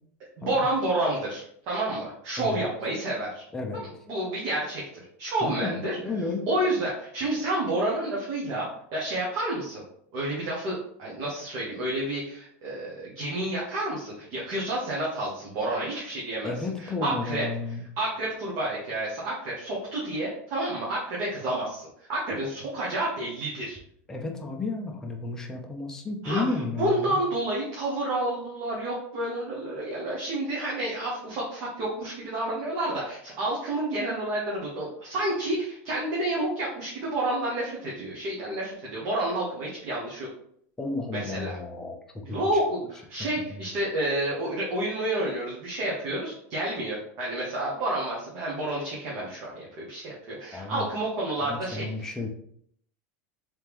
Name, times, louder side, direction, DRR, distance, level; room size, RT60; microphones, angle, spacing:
voice 1, 0.4-3.4 4.1-4.8 5.2-6.0 6.5-9.8 10.1-16.5 16.8-17.4 18.0-23.8 26.2-26.4 26.8-40.3 41.1-41.6 42.2-52.1, right 1 dB, 40° right, -5 dB, 1.0 m, -30 dB
voice 2, 3.5-4.0 5.4-6.5 16.4-17.8 24.1-27.2 40.8-42.0 42.3-42.6 43.2-43.7 50.5-50.9 51.4-52.3, left 3 dB, 5° left, 1 dB, 0.4 m, -33 dB
3.5 x 3.3 x 3.0 m, 0.66 s
supercardioid pair, 170°, 8 cm